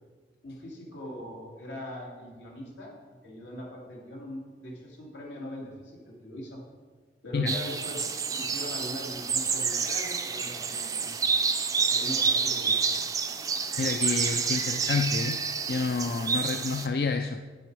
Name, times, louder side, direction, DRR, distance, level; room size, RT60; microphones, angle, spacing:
voice 1, 0.4-2.9 3.2-6.6 7.2-11.4 11.9-12.8, equal, 85° left, -3 dB, 2.6 m, -41 dB
sound 1, 7.5-16.9, right 5 dB, 20° right, 0.4 m, -29 dB
voice 2, 13.8-15.4 15.7-17.4, left 4 dB, 55° left, 7 dB, 0.4 m, -29 dB
9.3 x 7.8 x 4.7 m, 1.4 s
head